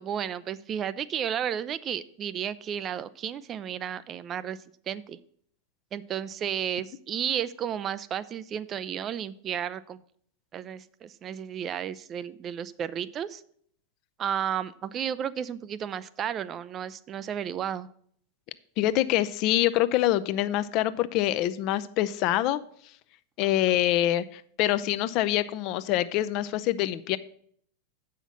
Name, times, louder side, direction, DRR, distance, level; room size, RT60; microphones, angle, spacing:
voice 1, 0.0-4.6 4.9-5.2 5.9-10.0 10.5-13.4 14.2-17.9 23.7-23.8, right 9 dB, 30° right, 16 dB, 0.4 m, -33 dB
voice 2, 18.8-22.6 23.4-27.2, left 14 dB, 40° left, 14 dB, 0.4 m, -25 dB
8.0 x 5.7 x 6.1 m, 0.62 s
figure-of-eight pair, 90°, 0 cm